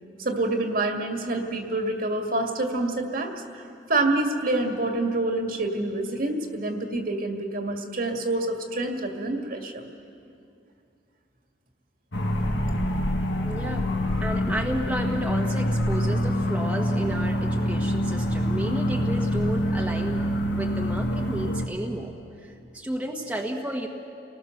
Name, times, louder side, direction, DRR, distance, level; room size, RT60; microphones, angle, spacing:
voice 1, 0.2-3.6 3.9-9.9, right 2 dB, 55° right, 3 dB, 2.1 m, -27 dB
sound 1, 12.1-21.7, equal, 75° left, 1.8 m, -26 dB
voice 2, 13.4-13.9 14.2-20.2 20.5-22.1 22.4-23.9, right 1 dB, 10° right, 0 dB, 1.4 m, -32 dB
29.5 x 19.5 x 6.6 m, 2.6 s
head